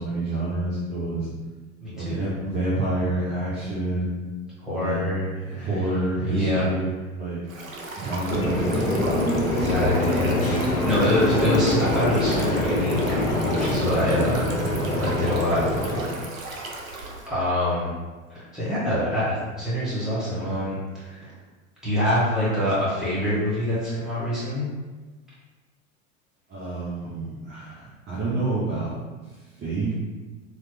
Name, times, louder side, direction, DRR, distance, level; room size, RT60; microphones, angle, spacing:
voice 1, 0.0-1.3 2.0-4.3 4.7-5.0 5.4-7.4 8.0-9.1 9.6-9.7 26.5-28.9 29.6-29.9, right 2 dB, 25° right, -8 dB, 0.7 m, -28 dB
voice 2, 1.8-2.2 4.6-5.7 6.2-6.7 9.3-13.2 13.5-14.4 15.0-15.6 15.9-16.1 17.3-17.9 18.3-21.3 21.8-24.7, left 1 dB, ahead, -10 dB, 1.5 m, -25 dB
Stream, 7.5-17.3, right 2 dB, 85° right, 0.6 m, -36 dB
sound 1, 8.3-16.1, left 1 dB, 80° left, 0.8 m, -24 dB
3.2 x 2.0 x 3.2 m, 1.3 s
figure-of-eight pair, 80°, 40 cm